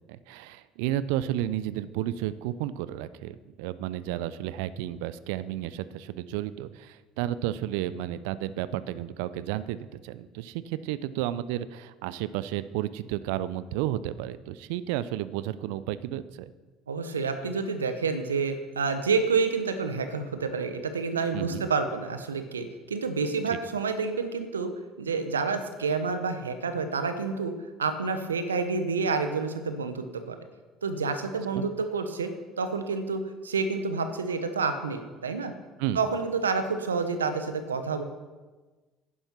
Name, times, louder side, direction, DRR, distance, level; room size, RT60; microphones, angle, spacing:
voice 1, 0.1-16.5 21.3-21.7 23.5-23.6 31.5-31.6 35.8-36.0, right 13 dB, 70° right, 16 dB, 0.4 m, -32 dB
voice 2, 16.9-24.7 25.0-27.5 27.8-30.4 30.8-32.3 32.6-35.5 35.9-38.0, right 4 dB, 90° right, 9 dB, 0.9 m, -29 dB
11.0 x 10.0 x 4.4 m, 1.3 s
hypercardioid pair, 60°, 0 cm